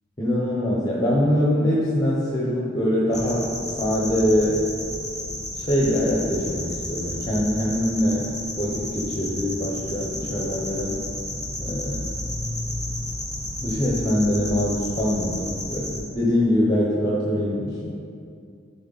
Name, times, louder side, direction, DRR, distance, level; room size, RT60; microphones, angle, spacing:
voice 1, 0.2-4.6 5.5-8.3 8.6-11.0 11.6-12.1 13.6-17.9, left 1 dB, 20° left, -5 dB, 0.8 m, -23 dB
sound 1, 3.1-16.0, left 1 dB, ahead, 1.8 m, -32 dB
11.5 x 4.0 x 4.0 m, 2.4 s
head